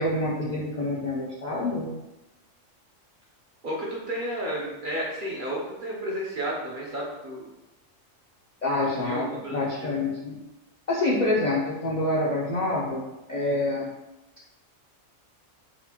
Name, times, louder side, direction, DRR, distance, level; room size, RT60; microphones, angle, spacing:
voice 1, 0.0-1.9 8.6-10.4 10.9-13.0 13.3-13.9, left 2 dB, 55° left, -5 dB, 0.5 m, -27 dB
voice 2, 3.6-7.5 8.9-9.9, right 1 dB, 55° right, -3 dB, 0.6 m, -32 dB
4.2 x 2.4 x 2.8 m, 1.0 s
omnidirectional pair, 1.3 m